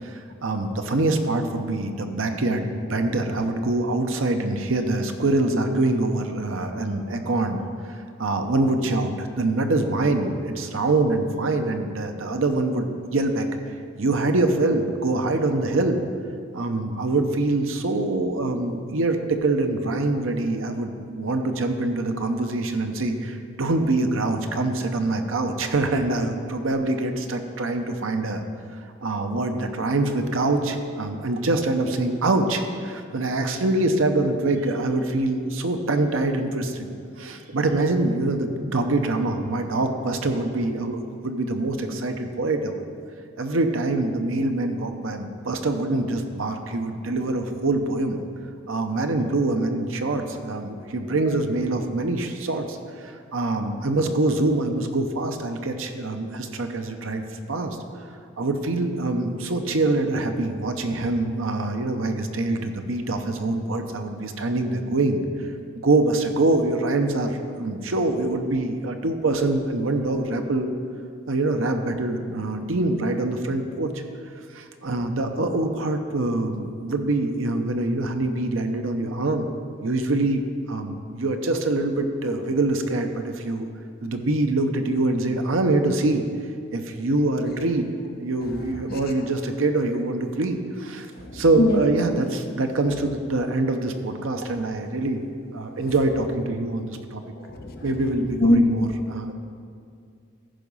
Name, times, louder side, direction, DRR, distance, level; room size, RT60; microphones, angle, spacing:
voice 1, 0.0-16.0 16.5-28.4 29.0-42.8 43.4-48.2 48.7-58.0 58.4-65.5 65.7-70.7 71.3-74.0 74.5-79.5 79.8-80.4 80.7-83.7 84.0-86.2 86.7-91.1 91.3-95.3 95.5-97.2 97.8-99.3, right 2 dB, 90° right, 6 dB, 0.8 m, -24 dB
voice 2, 91.2-91.8 97.4-97.8 98.4-98.9, left 1 dB, 50° left, 2 dB, 1.0 m, -22 dB
14.0 x 5.0 x 5.5 m, 2.3 s
head